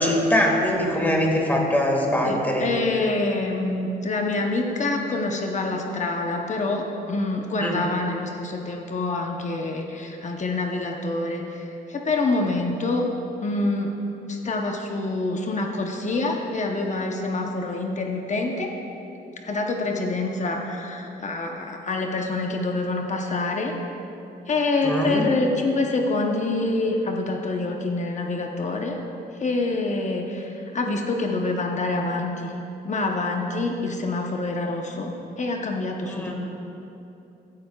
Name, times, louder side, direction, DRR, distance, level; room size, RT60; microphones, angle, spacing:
voice 1, 0.0-2.7 7.6-7.8 24.8-25.2 36.1-36.3, equal, 10° left, -1 dB, 1.8 m, -22 dB
voice 2, 2.2-13.1 13.4-13.9 14.3-18.8 19.4-23.7 24.5-29.0 29.3-32.6 32.8-35.1 35.4-36.3, left 2 dB, 40° left, 2 dB, 0.9 m, -26 dB
15.5 x 9.5 x 2.3 m, 2.8 s
cardioid pair, 95°, 18 cm